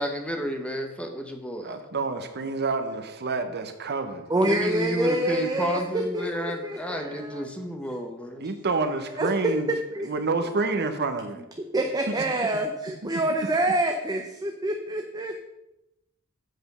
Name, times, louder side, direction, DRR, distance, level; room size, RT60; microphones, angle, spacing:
voice 1, 0.0-1.8 4.4-8.5, equal, 5° left, 4 dB, 0.9 m, -31 dB
voice 2, 1.6-4.6 8.4-9.7 10.1-11.4, right 3 dB, 50° right, 8 dB, 0.8 m, -28 dB
voice 3, 4.3-7.5 9.2-9.3 9.7-10.1 11.7-15.4, right 1 dB, 15° right, 3 dB, 0.6 m, -27 dB
7.8 x 5.0 x 6.7 m, 0.91 s
head